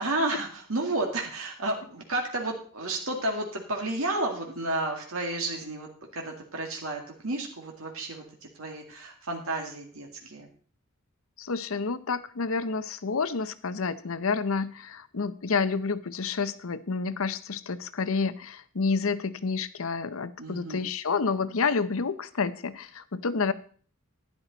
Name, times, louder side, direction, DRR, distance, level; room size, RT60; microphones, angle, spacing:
voice 1, 0.0-10.5 20.4-20.8, right 2 dB, 70° right, 1 dB, 2.1 m, -32 dB
voice 2, 11.4-23.5, left 4 dB, 70° left, 15 dB, 0.7 m, -29 dB
11.5 x 10.5 x 4.0 m, 0.44 s
head